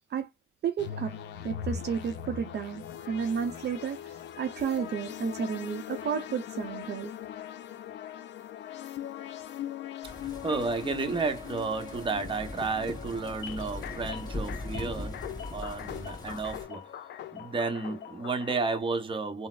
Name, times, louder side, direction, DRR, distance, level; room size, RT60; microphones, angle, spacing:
voice 1, 0.6-1.1 1.4-7.1, right 7 dB, 55° right, 0.6 m, -32 dB
sound 1, 0.8-18.8, left 9 dB, 65° left, 0.5 m, -41 dB
sound 2, 10.0-16.6, left 1 dB, 20° left, 1.3 m, -41 dB
voice 2, 10.2-15.3 15.5-16.8 17.3-19.5, right 4 dB, 25° right, 0.8 m, -32 dB
3.8 x 2.0 x 2.4 m
cardioid pair, 90°, 20 cm